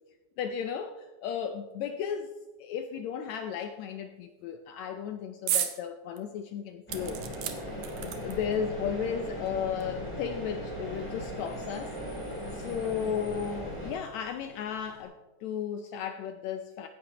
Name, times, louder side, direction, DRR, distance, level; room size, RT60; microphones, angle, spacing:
voice 1, 0.4-2.3 2.6-7.3 8.0-12.0 12.5-16.9, left 7 dB, 85° left, 7 dB, 1.6 m, -34 dB
sound 1, 5.5-5.8 6.2-6.3 6.9-8.6 9.4-9.5 9.8-9.9, right 10 dB, 70° right, 2.0 m, -33 dB
sound 2, 6.9-13.9, equal, 5° left, 2.9 m, -38 dB
Bus / Idling / Screech, 7.0-15.0, left 1 dB, 60° left, 5.5 m, -54 dB
16.0 x 10.5 x 2.9 m, 1.2 s
omnidirectional pair, 3.8 m